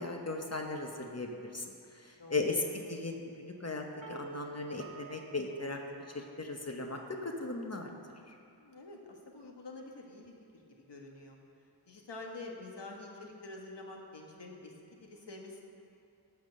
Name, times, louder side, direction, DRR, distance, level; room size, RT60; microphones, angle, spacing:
voice 1, 0.0-5.8 6.1-7.9, left 3 dB, 35° left, 2 dB, 1.0 m, -37 dB
sound 1, 4.0-7.0, right 3 dB, 50° right, 0.7 m, -49 dB
voice 2, 8.6-10.6 10.9-11.4 11.9-15.6, left 2 dB, 75° left, 0 dB, 1.6 m, -47 dB
12.0 x 5.8 x 7.5 m, 2.6 s
wide cardioid pair, 80°, 43 cm